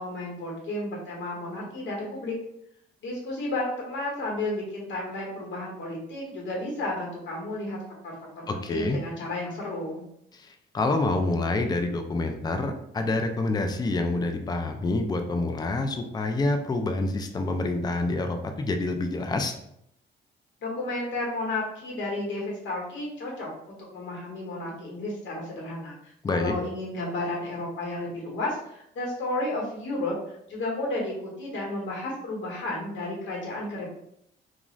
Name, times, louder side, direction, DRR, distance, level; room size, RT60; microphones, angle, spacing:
voice 1, 0.0-2.3 3.0-10.0 20.6-30.2 30.5-33.9, left 2 dB, 70° left, -2 dB, 1.1 m, -32 dB
voice 2, 8.5-9.0 10.3-19.5 26.2-26.5, left 2 dB, 20° left, 5 dB, 0.4 m, -27 dB
2.4 x 2.4 x 3.0 m, 0.73 s
cardioid pair, 90°, 20 cm